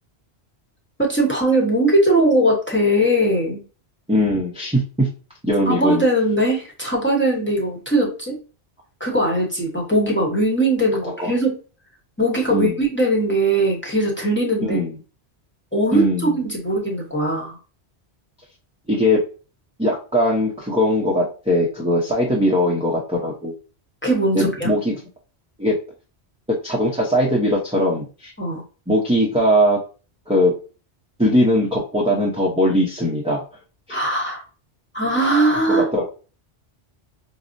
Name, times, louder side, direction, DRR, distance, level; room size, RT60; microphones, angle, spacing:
voice 1, 1.0-3.6 5.7-8.4 9.0-11.6 12.2-14.8 15.7-17.6 24.0-24.7 28.4-28.6 33.9-34.4 34.9-35.8, right 1 dB, 10° left, -2 dB, 0.9 m, -20 dB
voice 2, 4.1-5.1 5.4-6.0 11.1-11.3 12.5-12.7 14.6-15.0 15.9-16.3 18.9-19.2 19.8-23.5 24.3-24.9 25.6-25.8 26.5-28.3 28.9-29.8 30.3-30.5 31.2-33.4 33.9-34.0 35.7-36.0, equal, 10° right, -5 dB, 0.5 m, -20 dB
4.6 x 2.0 x 2.6 m, 0.35 s
omnidirectional pair, 1.1 m